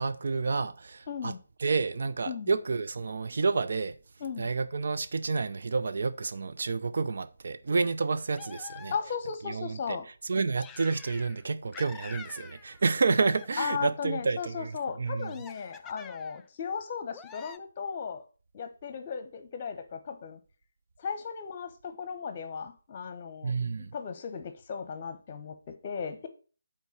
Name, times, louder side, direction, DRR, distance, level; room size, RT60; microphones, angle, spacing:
voice 1, 0.0-1.3 1.6-3.9 4.4-8.9 9.5-10.0 10.3-14.7 15.0-15.3 23.4-23.9, right 4 dB, 50° right, 0.6 m, -29 dB
voice 2, 1.1-1.4 2.3-2.5 4.2-4.5 8.9-10.1 13.6-18.2 18.5-20.4 21.0-23.5 23.9-26.3, left 6 dB, 30° left, 1.2 m, -36 dB
sound 1, 8.3-9.3 10.6-11.4 11.7-12.9 13.2-14.0 15.2-16.5 17.1-17.6, left 7 dB, 10° left, 0.3 m, -48 dB
8.2 x 4.3 x 6.5 m
figure-of-eight pair, 150°, 0 cm